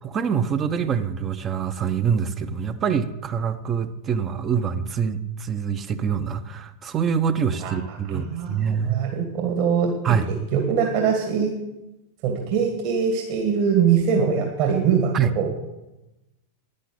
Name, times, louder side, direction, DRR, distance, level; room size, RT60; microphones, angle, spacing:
voice 1, 0.0-9.0 10.0-10.3 15.1-15.3, right 7 dB, 25° right, 8 dB, 1.0 m, -25 dB
voice 2, 8.1-10.2 10.5-11.5 12.2-15.6, right 7 dB, 45° right, 3 dB, 2.4 m, -23 dB
12.0 x 10.5 x 8.7 m, 0.97 s
figure-of-eight pair, 90°, 0 cm